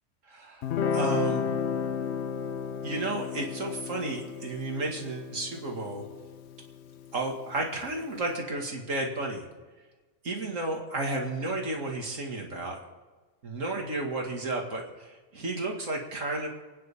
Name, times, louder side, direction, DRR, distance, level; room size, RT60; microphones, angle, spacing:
voice 1, 0.3-1.5 2.8-6.0 7.1-9.5 10.2-12.8 13.4-16.5, right 2 dB, 75° right, 1 dB, 2.4 m, -32 dB
Guitar, 0.6-7.8, left 6 dB, 65° left, 0.9 m, -33 dB
29.0 x 9.6 x 3.6 m, 1.3 s
omnidirectional pair, 1.3 m